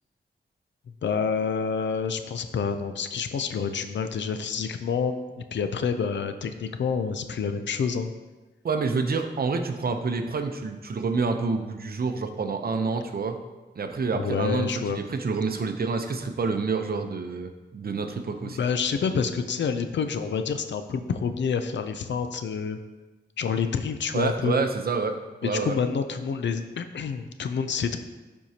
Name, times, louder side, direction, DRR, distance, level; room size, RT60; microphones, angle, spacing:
voice 1, 1.0-5.2 5.5-8.1 14.1-15.0 18.4-22.8 23.4-24.6 25.4-28.0, left 6 dB, 85° left, 9 dB, 0.5 m, -28 dB
voice 2, 8.6-13.4 13.8-18.6 24.1-25.2 25.4-25.7, right 4 dB, 55° right, 6 dB, 0.7 m, -28 dB
12.5 x 4.5 x 2.9 m, 1.2 s
wide cardioid pair, 90°, 18 cm